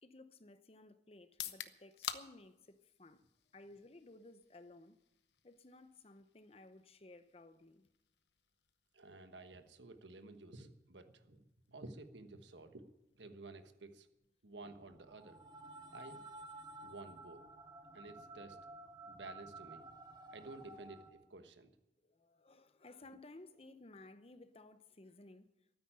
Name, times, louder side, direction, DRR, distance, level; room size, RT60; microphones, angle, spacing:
voice 1, 0.0-3.2 3.5-5.0 5.4-7.9 22.0-25.5, left 2 dB, 35° left, 0.8 m, -57 dB
sound 1, 1.2-15.1, left 10 dB, 75° left, 0.9 m, -53 dB
voice 2, 8.9-12.9 13.1-14.1 14.4-15.4 15.9-16.2 16.8-17.5 17.9-18.6 19.1-19.8 20.3-21.7, right 2 dB, 90° right, 1.3 m, -53 dB
sound 2, 14.6-21.1, right 2 dB, 25° right, 1.3 m, -53 dB
13.0 x 9.6 x 8.9 m
head